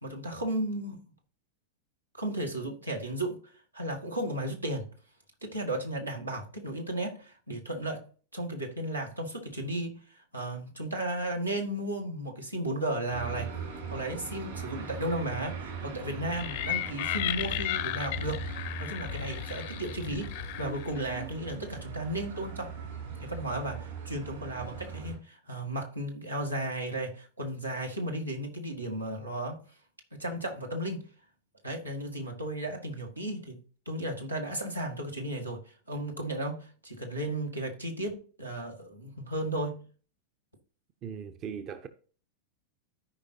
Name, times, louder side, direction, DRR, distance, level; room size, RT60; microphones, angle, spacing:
voice 1, 0.0-1.0 2.1-3.4 3.7-4.9 5.4-8.0 8.3-13.5 13.9-22.8 23.2-29.6 30.1-31.1 31.6-33.6 33.9-39.8, right 1 dB, 85° right, 1.7 m, -34 dB
sound 1, 13.1-25.2, right 6 dB, 60° right, 3.4 m, -40 dB
sound 2, 16.3-21.1, left 14 dB, 50° left, 0.6 m, -34 dB
voice 2, 41.0-41.9, right 7 dB, 35° right, 0.7 m, -39 dB
13.5 x 5.1 x 2.8 m
figure-of-eight pair, 90°, 0 cm